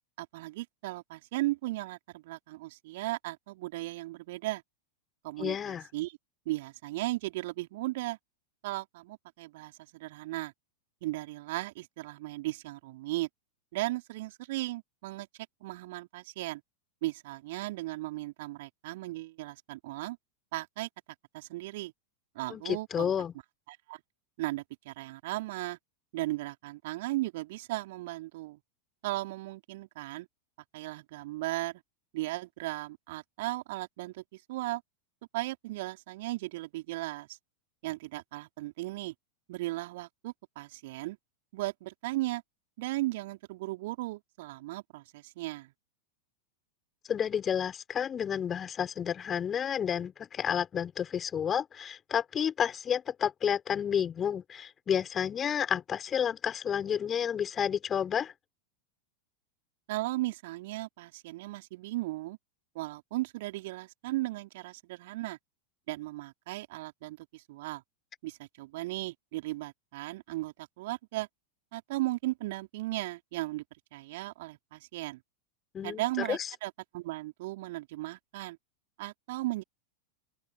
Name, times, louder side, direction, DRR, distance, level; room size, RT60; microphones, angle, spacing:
voice 1, 0.2-4.6 5.2-6.2 6.5-8.2 8.6-10.5 11.0-13.3 13.7-15.3 15.6-16.6 17.0-20.2 20.5-20.9 21.3-21.9 22.3-23.1 23.7-24.0 24.4-25.8 26.1-28.6 29.0-30.3 30.7-31.8 32.1-34.8 35.3-37.4 37.8-39.1 39.5-41.2 41.5-42.4 42.8-45.7 59.9-62.4 62.7-65.4 65.9-67.8 68.2-71.3 71.7-73.6 73.9-75.2 75.8-78.6 79.0-79.6, right 19 dB, 50° right, 4.1 m, -36 dB
voice 2, 5.4-5.8 22.5-23.3 47.1-58.3 75.7-76.4, left 8 dB, 25° left, 6.0 m, -30 dB
open air
figure-of-eight pair, 90°, 0 cm